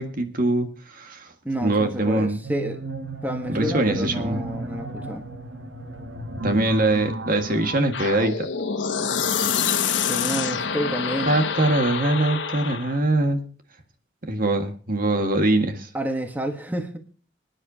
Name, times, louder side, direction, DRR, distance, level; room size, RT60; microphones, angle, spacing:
voice 1, 0.0-1.3 1.6-2.4 3.5-4.4 6.4-8.5 11.3-13.4 14.2-15.9, right 2 dB, 50° right, 6 dB, 1.8 m, -23 dB
voice 2, 1.4-2.8 3.2-5.2 9.9-11.4 15.9-17.0, equal, 10° right, 5 dB, 1.2 m, -29 dB
sound 1, 2.4-7.8, right 2 dB, 80° right, 1.6 m, -34 dB
sound 2, 7.9-13.0, left 6 dB, 80° left, 1.2 m, -26 dB
24.5 x 10.0 x 2.8 m, 0.40 s
head